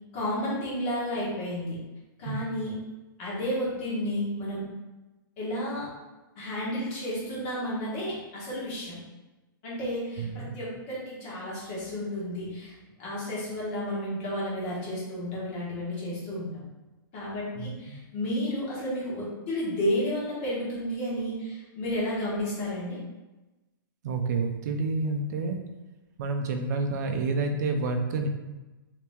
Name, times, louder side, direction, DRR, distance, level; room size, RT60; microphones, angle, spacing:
voice 1, 0.1-1.8 2.2-2.8 3.2-4.6 5.4-5.9 6.4-9.0 9.6-16.6 17.1-23.0, equal, 35° left, -7 dB, 1.2 m, -32 dB
voice 2, 10.2-10.5 17.6-18.0 24.0-25.6 26.2-28.3, right 3 dB, 50° right, 5 dB, 0.5 m, -29 dB
2.9 x 2.8 x 3.4 m, 1.1 s
hypercardioid pair, 160°, 12 cm